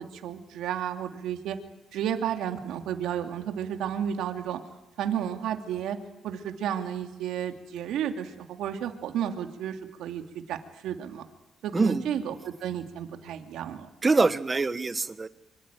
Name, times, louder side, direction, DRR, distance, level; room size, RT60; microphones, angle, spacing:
voice 1, 0.0-1.6 1.9-4.6 5.0-6.0 6.2-10.6 10.8-11.2 11.6-13.9, right 9 dB, 85° right, 6 dB, 2.6 m, -32 dB
voice 2, 11.7-12.0 14.0-15.3, right 3 dB, 25° right, 13 dB, 1.5 m, -24 dB
25.5 x 25.0 x 9.2 m, 0.89 s
cardioid pair, 90°, 0 cm